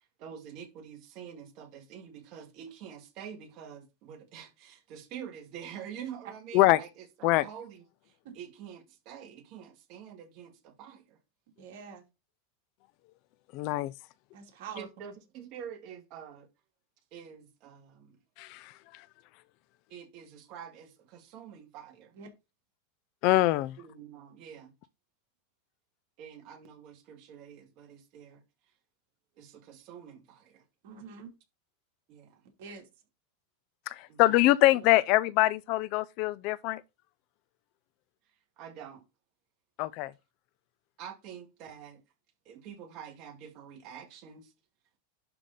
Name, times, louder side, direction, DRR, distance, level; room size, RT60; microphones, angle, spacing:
voice 1, 0.2-7.8 8.3-11.2 14.8-16.5 17.1-18.2 19.9-22.1 23.8-24.7 26.2-28.4 29.4-30.6 32.1-32.4 34.1-34.4 38.6-39.0 41.0-42.0 42.5-44.5, right 8 dB, 45° right, 1.8 m, -46 dB
voice 2, 11.6-12.0 14.3-14.9 22.1-22.3 30.8-31.3 32.6-32.9, right 6 dB, 65° right, 2.8 m, -45 dB
voice 3, 13.5-13.9 18.4-18.7 23.2-23.8 33.9-36.8 39.8-40.1, left 17 dB, 45° left, 0.5 m, -24 dB
11.5 x 3.8 x 3.9 m
supercardioid pair, 150°, 0 cm